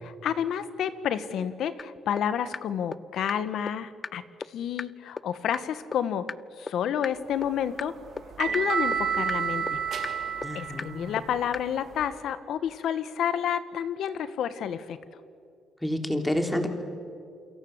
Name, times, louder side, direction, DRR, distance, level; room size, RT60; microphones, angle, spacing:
voice 1, 0.0-4.2 4.5-6.3 6.6-8.0 8.4-9.8 10.5-15.0, left 9 dB, 75° left, 13 dB, 1.5 m, -30 dB
sound 1, 1.8-1.9 2.2-2.3 2.5-2.6 2.9-3.0 3.3-3.4 3.7-3.8 4.0-4.1 4.4-4.5 4.8-4.9 5.2-5.3 5.5-5.6 5.9-6.0 6.3-6.4 6.7-6.8 7.0-7.1 7.4-7.5 7.8-7.9 8.2-8.3 8.5-8.6 8.9-9.0 9.3-9.4 9.7-9.8 10.0-10.1 10.4-10.5 10.8-10.9 11.2-11.3 11.5-11.6, left 5 dB, 35° left, 0.6 m, -34 dB
sound 2, 7.3-12.1, right 6 dB, 65° right, 3.7 m, -31 dB
voice 2, 10.4-11.1 15.8-16.7, left 1 dB, 5° left, 5 dB, 3.5 m, -29 dB
28.5 x 23.5 x 8.1 m, 2.5 s
cardioid pair, 90°, 0 cm